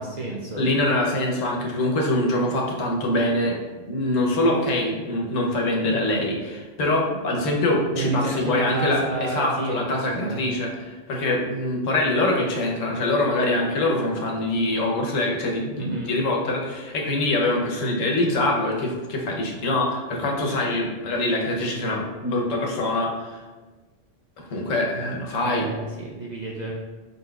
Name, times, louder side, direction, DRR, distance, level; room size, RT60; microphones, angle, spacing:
voice 1, 0.0-0.6 8.0-10.4 15.8-16.2 25.4-26.7, right 2 dB, 55° right, -3 dB, 0.5 m, -30 dB
voice 2, 0.6-3.6 3.9-23.4 24.4-25.7, left 1 dB, 90° left, 0 dB, 1.2 m, -24 dB
5.4 x 4.0 x 2.3 m, 1.3 s
omnidirectional pair, 1.3 m